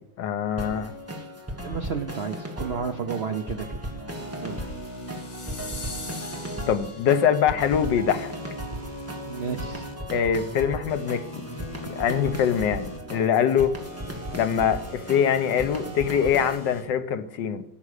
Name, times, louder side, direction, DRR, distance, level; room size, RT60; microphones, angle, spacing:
voice 1, 0.2-0.9 6.7-8.3 10.1-11.4 12.0-13.7 14.3-17.6, left 8 dB, 80° left, 1.5 m, -23 dB
sound 1, 0.6-16.6, equal, 10° right, 1.3 m, -36 dB
voice 2, 1.6-3.8 4.4-4.7 9.3-9.9, right 6 dB, 65° right, 0.6 m, -31 dB
sound 2, 4.1-6.7 7.6-9.9 10.9-13.0 13.8-16.8, equal, 15° left, 2.9 m, -41 dB
sound 3, 5.0-7.5, left 4 dB, 55° left, 2.2 m, -41 dB
14.5 x 6.1 x 6.6 m
omnidirectional pair, 2.0 m